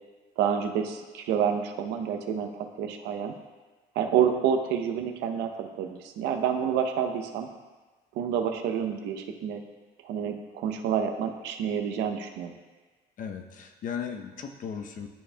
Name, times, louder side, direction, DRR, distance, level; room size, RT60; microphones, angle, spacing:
voice 1, 0.4-3.3 4.0-7.5 8.2-9.6 10.0-12.6, right 8 dB, 90° right, 5 dB, 0.7 m, -28 dB
voice 2, 13.2-15.1, left 7 dB, 50° left, 5 dB, 0.7 m, -36 dB
12.0 x 4.3 x 2.2 m, 1.3 s
cardioid pair, 110°, 17 cm